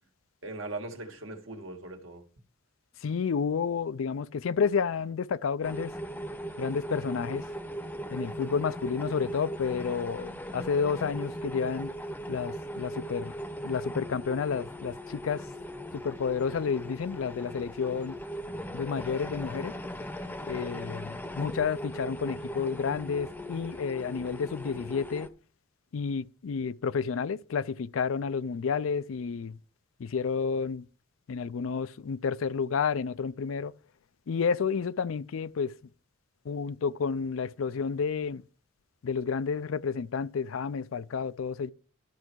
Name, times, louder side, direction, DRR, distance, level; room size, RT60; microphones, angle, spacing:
voice 1, 0.4-2.2 18.5-18.8, right 2 dB, 75° right, 1.8 m, -40 dB
voice 2, 3.0-5.9 6.6-7.4 8.1-11.9 12.3-13.3 13.6-15.4 15.9-18.2 18.7-19.7 20.4-25.3 25.9-29.6 30.0-30.9 31.3-33.7 34.3-35.7 36.4-38.4 39.0-41.7, left 6 dB, 80° left, 0.4 m, -30 dB
sound 1, 5.6-25.3, equal, 10° left, 0.7 m, -39 dB
12.0 x 5.6 x 4.6 m
head